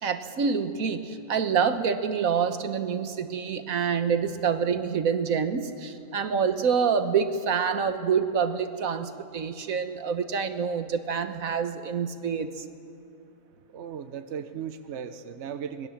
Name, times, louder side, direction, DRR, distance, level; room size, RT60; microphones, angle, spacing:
voice 1, 0.0-12.6, right 6 dB, 80° right, 8 dB, 1.6 m, -27 dB
voice 2, 13.7-15.9, right 7 dB, 60° right, 9 dB, 1.1 m, -36 dB
25.5 x 20.0 x 7.3 m, 2.7 s
omnidirectional pair, 1.4 m